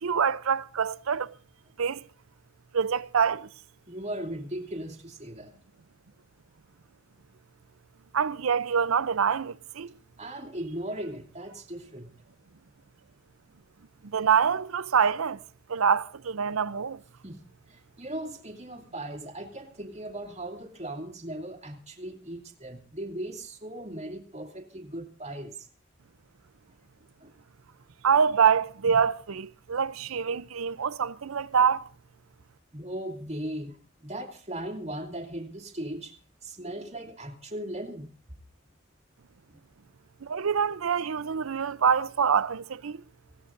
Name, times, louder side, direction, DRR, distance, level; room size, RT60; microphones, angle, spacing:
voice 1, 0.0-1.3 1.8-2.0 2.7-3.5 8.1-9.9 14.1-15.4 15.7-17.0 28.0-31.9 40.2-43.0, right 6 dB, 80° right, 0.6 m, -25 dB
voice 2, 3.9-5.5 10.2-12.1 17.2-25.7 27.2-27.3 32.7-38.1 39.5-39.6, right 1 dB, 30° right, 2.5 m, -38 dB
25.0 x 17.0 x 2.6 m
head